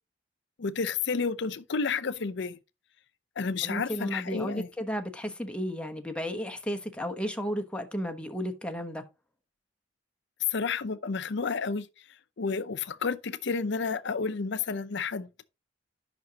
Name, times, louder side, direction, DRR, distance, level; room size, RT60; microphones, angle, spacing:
voice 1, 0.6-2.6 3.4-4.7 10.5-11.9 12.4-15.3, left 5 dB, 65° left, 0.6 m, -31 dB
voice 2, 3.6-9.0, equal, 5° left, 1.0 m, -33 dB
10.5 x 6.1 x 2.9 m
head